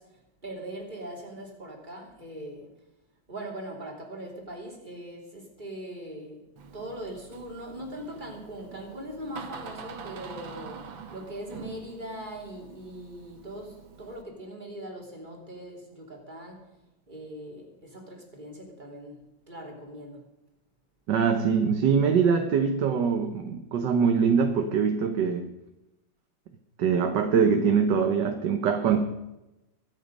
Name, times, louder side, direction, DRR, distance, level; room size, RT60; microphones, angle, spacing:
voice 1, 0.0-2.7 3.3-6.4 6.7-16.8 17.1-20.2, right 1 dB, 25° right, 0 dB, 3.3 m, -41 dB
Door, 6.6-14.2, right 6 dB, 85° right, 2.2 m, -45 dB
voice 2, 21.1-25.5 26.8-29.1, right 6 dB, 65° right, 6 dB, 1.5 m, -23 dB
23.0 x 8.5 x 5.3 m, 0.96 s
omnidirectional pair, 2.1 m